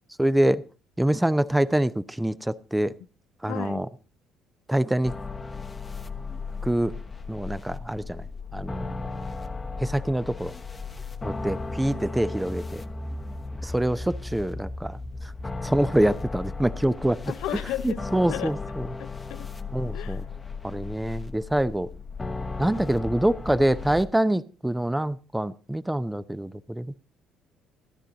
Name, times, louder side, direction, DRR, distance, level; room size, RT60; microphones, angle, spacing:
voice 1, 0.2-0.6 1.0-2.9 3.4-3.9 4.7-5.1 6.6-6.9 7.3-8.2 8.5-8.9 9.8-10.5 11.2-12.8 13.6-15.0 15.6-17.2 17.8-18.9 19.7-20.2 20.6-21.9 22.6-27.0, right 1 dB, 10° right, 0.7 m, -25 dB
voice 2, 3.5-3.8 17.3-18.0 18.3-18.5 19.0-19.5 19.9-20.2, left 13 dB, 70° left, 0.6 m, -34 dB
sound 1, 5.0-24.1, left 3 dB, 25° left, 1.0 m, -35 dB
14.0 x 11.5 x 4.0 m
hypercardioid pair, 55°, 0 cm